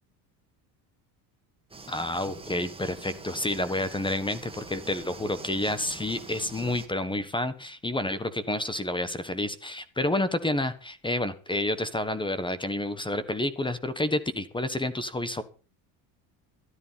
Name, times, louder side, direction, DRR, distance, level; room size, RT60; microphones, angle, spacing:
sound 1, 1.7-6.9, right 4 dB, 15° right, 2.5 m, -44 dB
voice 1, 1.9-15.4, left 1 dB, 10° left, 14 dB, 1.3 m, -29 dB
13.0 x 12.5 x 5.7 m, 0.36 s
cardioid pair, 115°, 40 cm